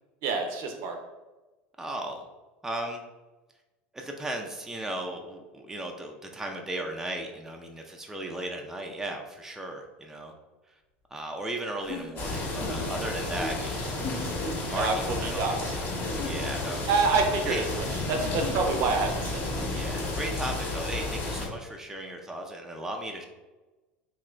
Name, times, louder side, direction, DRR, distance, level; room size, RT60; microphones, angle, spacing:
voice 1, 0.2-1.0 14.8-15.7 16.9-17.7 17.9-19.4, right 4 dB, 60° right, 3 dB, 0.6 m, -27 dB
voice 2, 1.8-2.3 2.6-3.0 3.9-10.3 11.1-13.8 14.7-15.4 16.2-17.7 19.7-23.3, right 1 dB, 5° right, 2 dB, 0.4 m, -36 dB
sound 1, 11.8-13.1 13.9-14.5 16.0-16.8 18.2-19.0, left 6 dB, 60° left, 0.6 m, -40 dB
sound 2, 12.2-21.5, left 2 dB, 40° left, 0.8 m, -32 dB
2.8 x 2.5 x 3.1 m, 1.2 s
hypercardioid pair, 85°, 6 cm